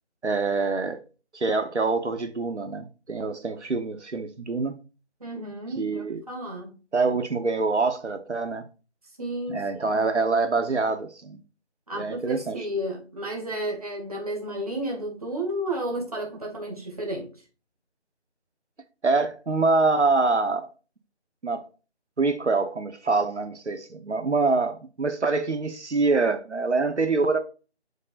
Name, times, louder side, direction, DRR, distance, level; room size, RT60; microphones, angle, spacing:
voice 1, 0.2-1.0 1.3-4.7 5.8-6.2 6.9-8.7 9.5-11.4 11.9-12.6 19.0-20.7 21.4-21.6 22.2-27.4, right 3 dB, 90° right, 1.2 m, -25 dB
voice 2, 5.2-6.8 9.2-10.0 11.9-17.3, right 1 dB, 35° right, 2.1 m, -32 dB
8.0 x 5.3 x 2.6 m
figure-of-eight pair, 175°, 34 cm